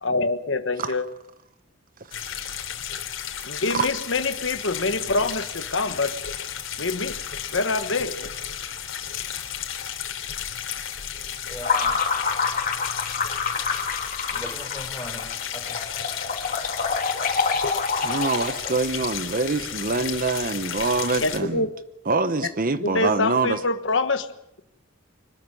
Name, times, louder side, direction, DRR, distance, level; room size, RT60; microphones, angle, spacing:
voice 1, 0.0-1.0 3.4-6.1 6.8-7.2 7.5-8.3 21.2-21.7 22.8-24.3, left 3 dB, 70° left, 1.4 m, -25 dB
sound 1, 2.1-21.4, left 9 dB, 85° left, 3.2 m, -33 dB
voice 2, 11.5-11.9 14.3-15.8, left 1 dB, 10° left, 4.4 m, -38 dB
sound 2, 11.6-18.8, left 5 dB, 45° left, 3.1 m, -27 dB
voice 3, 18.0-21.6 22.1-23.6, right 3 dB, 45° right, 0.9 m, -25 dB
25.0 x 13.0 x 9.8 m
head